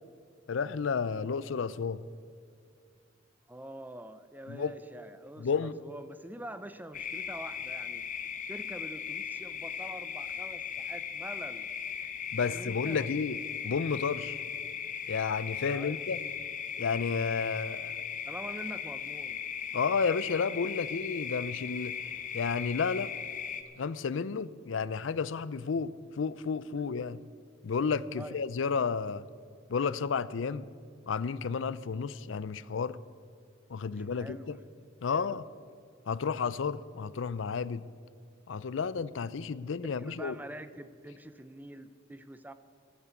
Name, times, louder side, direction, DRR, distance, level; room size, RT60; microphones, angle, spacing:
voice 1, 0.5-2.0 4.5-4.7 5.4-5.8 12.3-13.4 13.6-14.4 15.1-16.2 16.8-17.9 19.7-22.1 22.3-23.1 23.8-27.2 27.6-29.2 29.7-30.6 31.1-33.0 33.7-34.6 35.0-35.4 36.1-37.8 38.5-40.4, left 5 dB, 75° left, 0.5 m, -31 dB
voice 2, 3.5-8.1 8.5-11.7 12.4-13.0 14.2-14.5 15.7-16.0 18.3-19.4 28.1-28.4 33.9-34.6 35.1-35.4 39.8-42.5, right 1 dB, 10° right, 0.5 m, -45 dB
sound 1, 6.9-23.6, left 7 dB, 40° left, 0.9 m, -38 dB
14.5 x 9.0 x 8.3 m
head